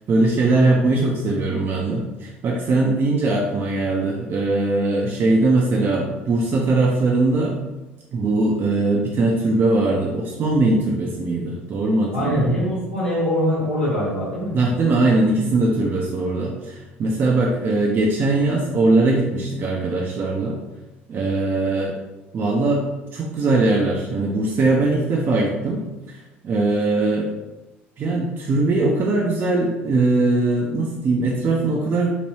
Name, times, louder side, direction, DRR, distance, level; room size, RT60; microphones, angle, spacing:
voice 1, 0.1-7.5 8.1-12.5 14.5-20.6 21.1-22.0 22.3-22.8 23.1-25.8 26.4-27.3 28.0-32.1, right 2 dB, 35° right, -1 dB, 0.5 m, -20 dB
voice 2, 12.1-14.6, equal, 85° left, -9 dB, 0.9 m, -23 dB
2.9 x 2.9 x 2.8 m, 1.1 s
figure-of-eight pair, 60°, 6 cm